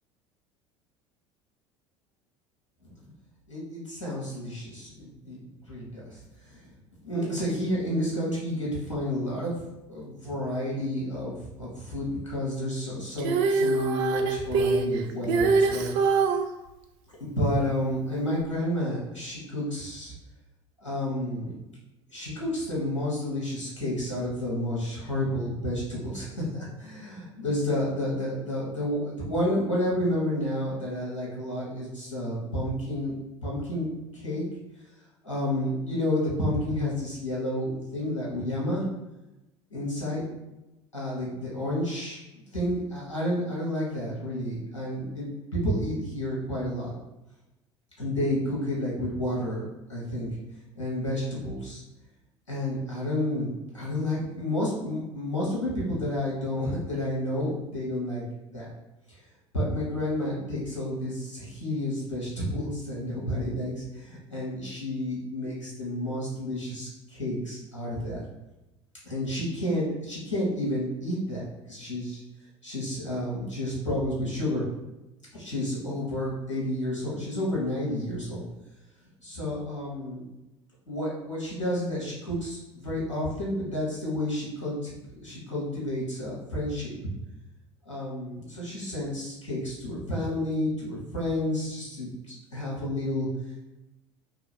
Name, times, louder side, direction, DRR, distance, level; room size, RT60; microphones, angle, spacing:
voice 1, 3.5-6.6 7.0-9.6 9.9-15.9 17.2-20.1 20.8-21.6 22.1-33.1 33.4-34.5 35.2-38.9 39.7-40.3 40.9-42.2 42.5-46.9 48.0-50.3 50.7-51.8 52.5-58.2 58.5-58.7 59.1-59.2 59.5-68.2 69.0-72.2 72.6-74.7 75.3-78.4 79.2-80.2 80.9-86.9 87.8-93.3, left 1 dB, 85° left, -6 dB, 1.2 m, -30 dB
Female singing, 13.2-16.5 18.4-18.5, right 4 dB, 60° right, 0.5 m, -23 dB
2.9 x 2.8 x 4.3 m, 0.98 s
figure-of-eight pair, 70°, 16 cm